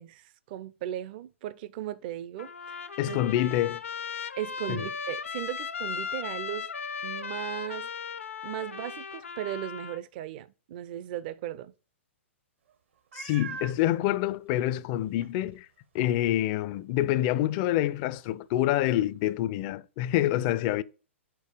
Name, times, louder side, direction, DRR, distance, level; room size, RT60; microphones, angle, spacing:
voice 1, 0.0-3.2 4.4-6.7 7.0-7.9 8.4-11.7, right 12 dB, 45° right, 0.4 m, -37 dB
Trumpet, 2.4-10.0, left 6 dB, 80° left, 0.7 m, -37 dB
voice 2, 3.0-3.8 4.7-4.9 13.1-15.7 15.9-20.8, left 13 dB, 40° left, 0.4 m, -27 dB
Meow, 13.1-13.8 14.6-14.7 15.2-15.3 19.3-19.4, right 5 dB, 65° right, 0.8 m, -40 dB
4.6 x 4.5 x 4.9 m
hypercardioid pair, 120°, 7 cm